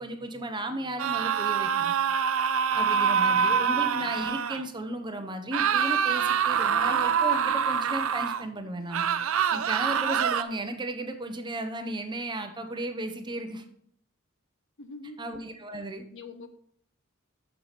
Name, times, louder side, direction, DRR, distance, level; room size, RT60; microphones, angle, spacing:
voice 1, 0.0-1.9 2.7-9.1 9.5-13.6 15.2-16.0, right 1 dB, 20° right, 6 dB, 0.7 m, -35 dB
sound 1, 1.0-4.6 5.5-8.4 8.9-10.4, right 7 dB, 70° right, 0.5 m, -25 dB
voice 2, 2.7-3.6 14.8-15.2 16.1-16.5, left 3 dB, 60° left, 9 dB, 0.9 m, -45 dB
7.6 x 6.6 x 4.1 m, 0.65 s
head